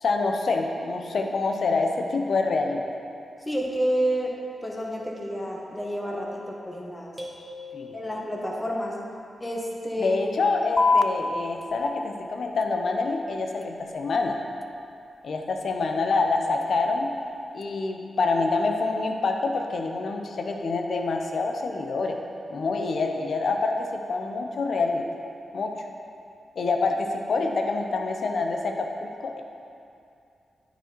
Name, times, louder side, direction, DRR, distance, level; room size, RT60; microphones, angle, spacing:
voice 1, 0.0-2.8 7.7-7.9 10.0-14.4 15.2-17.1 17.5-22.2 22.5-25.0 25.5-25.7 26.6-29.4, left 3 dB, 70° left, 3 dB, 0.7 m, -26 dB
voice 2, 3.4-7.1 7.9-9.0 9.4-10.2, equal, 15° left, -2 dB, 1.5 m, -29 dB
sound 1, 7.2-8.7, left 1 dB, 15° right, 1.5 m, -42 dB
sound 2, 10.8-17.8, left 3 dB, 35° left, 0.3 m, -31 dB
9.1 x 4.1 x 4.5 m, 2.5 s
supercardioid pair, 40°, 0 cm